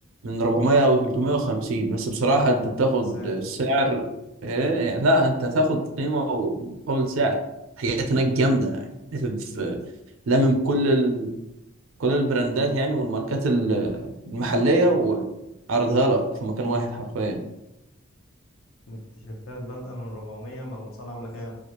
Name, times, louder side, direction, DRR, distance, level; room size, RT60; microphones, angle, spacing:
voice 1, 0.2-4.1 4.4-7.4 7.8-8.8 9.1-9.8 10.3-11.3 12.0-15.3 15.7-17.4, right 1 dB, 75° right, 3 dB, 0.5 m, -23 dB
voice 2, 18.9-21.6, equal, 75° left, 0 dB, 0.7 m, -37 dB
2.4 x 2.3 x 2.8 m, 0.93 s
head